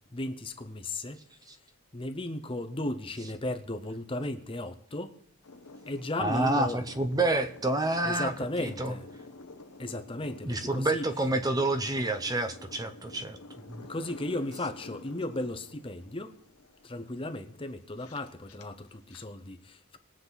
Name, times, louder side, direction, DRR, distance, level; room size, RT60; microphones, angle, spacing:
voice 1, 0.1-1.2 1.9-5.1 5.9-6.8 8.0-9.1 9.8-11.1 13.9-16.4 16.8-20.0, left 1 dB, 25° left, 0.7 m, -35 dB
sound 1, 5.4-19.3, left 2 dB, 85° left, 1.1 m, -49 dB
voice 2, 6.2-8.3 8.6-8.9 10.4-13.4 13.7-13.9, right 2 dB, 15° right, 0.6 m, -28 dB
21.5 x 7.5 x 4.0 m
head